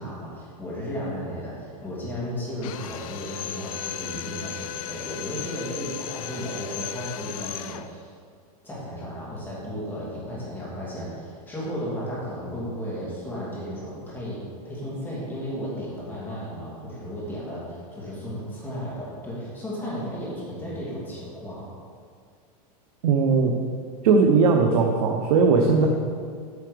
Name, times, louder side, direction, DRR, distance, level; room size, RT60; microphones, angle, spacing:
voice 1, 0.0-8.1 8.6-21.7 25.6-25.9, equal, 10° left, -7 dB, 2.6 m, -34 dB
Drill, 2.6-7.9, left 11 dB, 60° left, 0.5 m, -36 dB
voice 2, 23.0-23.5 24.0-25.9, right 5 dB, 75° right, 2 dB, 0.9 m, -19 dB
9.6 x 5.9 x 5.1 m, 2.1 s
supercardioid pair, 165°, 20 cm